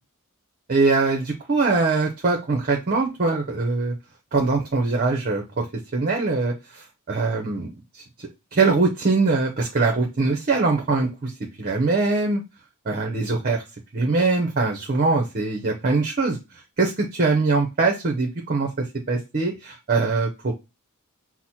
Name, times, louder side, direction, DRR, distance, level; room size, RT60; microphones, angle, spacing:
voice 1, 0.7-3.9 4.3-5.6 5.9-7.7 8.2-11.3 11.6-12.4 12.9-13.6 13.9-16.4 16.8-20.5, right 3 dB, 40° right, 2 dB, 0.7 m, -22 dB
5.9 x 2.1 x 4.2 m, 0.26 s
head